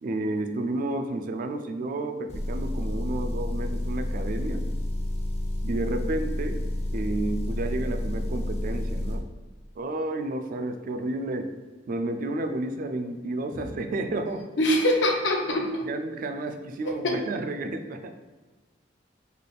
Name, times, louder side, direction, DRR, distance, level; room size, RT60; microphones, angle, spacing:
voice 1, 0.0-4.7 5.6-6.6 6.9-9.3 9.8-11.5 11.9-14.4 15.8-18.1, right 2 dB, 50° right, 6 dB, 0.3 m, -31 dB
Motor vehicle (road) / Engine, 2.3-9.2, left 1 dB, 35° left, 0.7 m, -30 dB
voice 2, 14.6-15.9 17.0-17.1, left 1 dB, 75° left, 1 dB, 0.6 m, -23 dB
3.3 x 2.4 x 3.8 m, 1.2 s
head